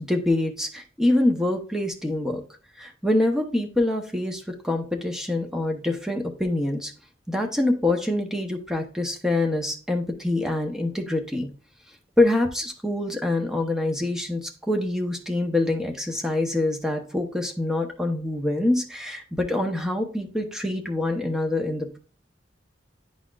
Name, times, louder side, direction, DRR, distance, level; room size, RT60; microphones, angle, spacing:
voice 1, 0.0-2.4 2.8-6.9 7.3-11.5 12.2-22.0, left 2 dB, 5° right, 3 dB, 0.8 m, -25 dB
10.5 x 4.2 x 2.4 m, 0.36 s
head